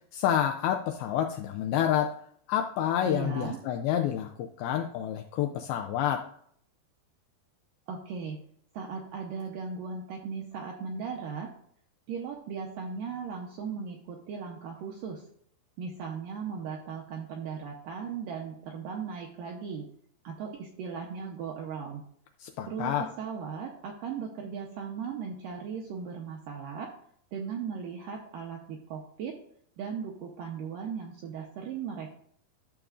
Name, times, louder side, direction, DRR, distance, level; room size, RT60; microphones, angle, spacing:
voice 1, 0.1-2.2 2.5-6.3 22.4-23.1, left 10 dB, 85° left, 4 dB, 2.2 m, -28 dB
voice 2, 3.1-3.6 7.9-8.4 8.7-11.5 12.1-15.3 15.8-19.9 20.2-22.0 22.7-26.9 27.3-29.3 29.8-32.2, right 6 dB, 80° right, 0 dB, 2.0 m, -37 dB
12.0 x 7.0 x 2.5 m, 0.65 s
omnidirectional pair, 4.9 m